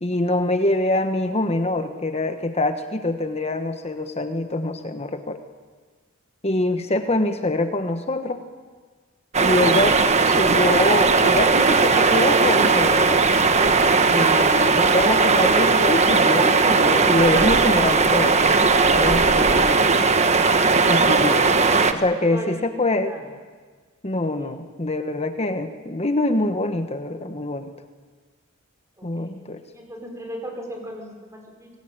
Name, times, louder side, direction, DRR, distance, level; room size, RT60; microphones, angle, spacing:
voice 1, 0.0-5.4 6.4-8.4 9.4-13.2 14.1-18.4 18.9-19.9 20.9-21.5 21.9-23.1 24.0-27.7 29.0-29.6, left 2 dB, 30° left, 8 dB, 1.2 m, -24 dB
sound 1, 9.3-21.9, right 4 dB, 35° right, 1.2 m, -18 dB
voice 2, 29.0-29.3 29.7-31.7, equal, 15° right, 2 dB, 5.2 m, -38 dB
25.5 x 19.0 x 9.0 m, 1.5 s
head